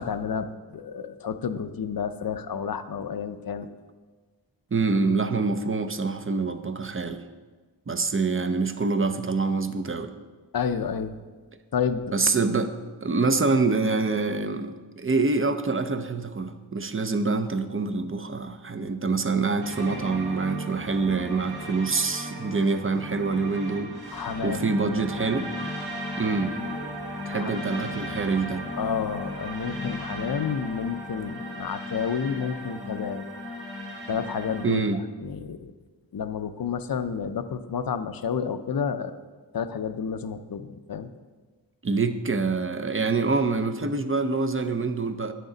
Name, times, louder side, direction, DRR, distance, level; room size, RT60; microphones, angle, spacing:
voice 1, 0.0-3.7 10.5-11.2 11.7-12.0 24.1-24.6 27.3-27.5 27.9-28.0 28.8-33.2 34.1-34.8 35.2-35.7 36.1-39.2 39.5-41.1, left 6 dB, 50° left, 11 dB, 0.5 m, -30 dB
voice 2, 4.7-7.2 7.9-10.1 12.1-12.7 13.0-25.5 26.2-26.5 27.3-28.6 34.6-35.0 41.8-45.3, right 4 dB, 30° right, 9 dB, 0.5 m, -26 dB
sound 1, 19.6-34.6, left 1 dB, 70° right, 2.2 m, -36 dB
9.5 x 6.5 x 3.9 m, 1.4 s
wide cardioid pair, 65°, 45 cm